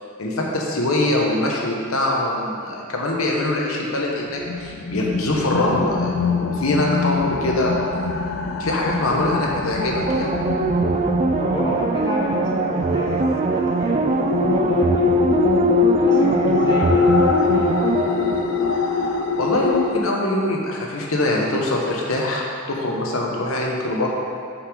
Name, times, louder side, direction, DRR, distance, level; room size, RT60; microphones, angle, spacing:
voice 1, 0.2-7.8 8.6-10.3 19.4-24.1, left 1 dB, 80° left, -2 dB, 1.0 m, -23 dB
sound 1, 4.2-20.0, left 6 dB, 65° left, 0.4 m, -24 dB
sound 2, 10.1-19.5 19.8-19.9, right 3 dB, 35° right, 0.3 m, -22 dB
voice 2, 11.4-15.3 16.0-17.8, left 1 dB, 20° left, -5 dB, 1.1 m, -30 dB
5.8 x 5.7 x 5.0 m, 2.3 s
head